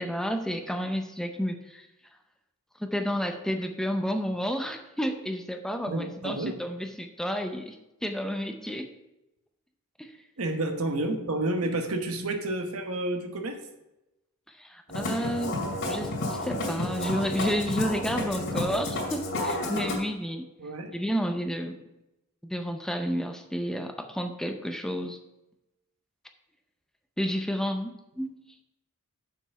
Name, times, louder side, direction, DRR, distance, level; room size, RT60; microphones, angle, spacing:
voice 1, 0.0-1.9 2.8-7.8 8.0-8.9 10.0-10.1 14.5-15.6 15.9-20.5 20.9-21.8 22.4-25.2 27.2-28.4, equal, ahead, 5 dB, 0.5 m, -31 dB
voice 2, 5.9-6.5 10.4-13.6 20.6-20.9, right 2 dB, 70° right, 5 dB, 1.1 m, -30 dB
Musical instrument, 14.9-19.9, left 1 dB, 60° left, 2.5 m, -31 dB
7.3 x 5.8 x 5.4 m, 0.94 s
head